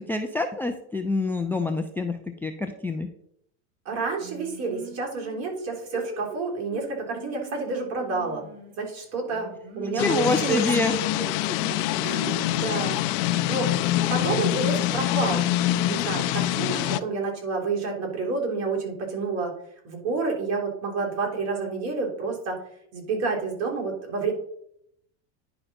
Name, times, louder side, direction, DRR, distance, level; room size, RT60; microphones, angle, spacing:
voice 1, 0.0-3.1 9.8-10.9 11.5-11.6, left 2 dB, 5° left, 4 dB, 0.4 m, -27 dB
voice 2, 3.8-8.5 8.8-9.5 9.7-10.7 12.0-13.0 13.3-13.7 14.1-15.4 15.7-19.5 19.8-22.6 22.9-24.3, right 4 dB, 45° right, 0 dB, 3.4 m, -29 dB
Singing, 4.2-8.9 9.3-13.3 13.8-14.9, equal, 60° right, 3.8 m, -41 dB
sound 1, 10.0-17.0, left 14 dB, 55° left, 0.6 m, -25 dB
10.0 x 5.5 x 4.2 m, 0.72 s
supercardioid pair, 130°, 36 cm